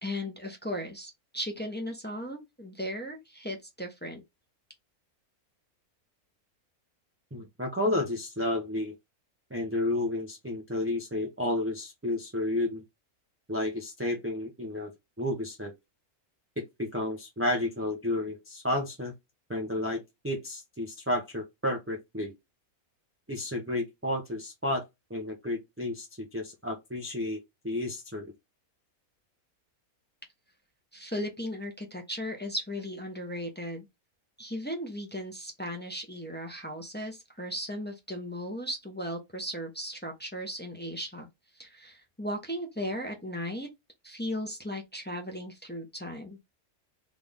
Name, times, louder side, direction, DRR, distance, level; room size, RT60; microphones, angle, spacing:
voice 1, 0.0-4.2 30.9-33.9 34.4-41.3 41.5-43.7 44.0-46.4, equal, 10° left, 1.0 m, -36 dB
voice 2, 7.3-8.9 9.5-12.8 13.5-14.9 15.2-15.7 16.6-19.1 19.5-22.3 23.3-28.3, left 1 dB, 10° right, 0.8 m, -31 dB
3.8 x 3.5 x 3.5 m
omnidirectional pair, 1.6 m